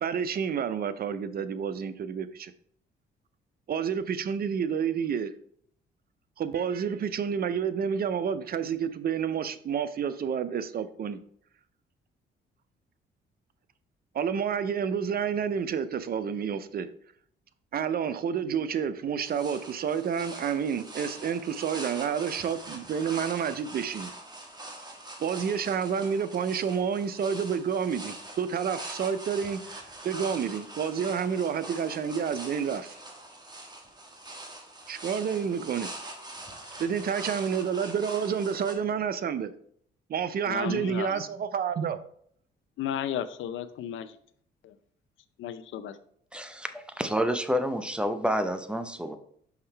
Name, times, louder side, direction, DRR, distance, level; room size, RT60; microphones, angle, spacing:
voice 1, 0.0-2.5 3.7-5.3 6.4-11.2 14.1-16.9 17.7-24.1 25.2-33.0 34.9-35.9 36.8-39.5 40.1-42.0, right 7 dB, 50° right, 13 dB, 0.6 m, -29 dB
sound 1, 19.2-38.7, right 1 dB, 20° right, 1.4 m, -43 dB
voice 2, 40.4-41.2 42.8-44.2 44.6-44.8 45.4-45.9, left 9 dB, 80° left, 12 dB, 0.6 m, -34 dB
voice 3, 46.3-49.2, equal, 5° right, 9 dB, 0.7 m, -29 dB
5.8 x 5.5 x 3.3 m, 0.64 s
cardioid pair, 90°, 20 cm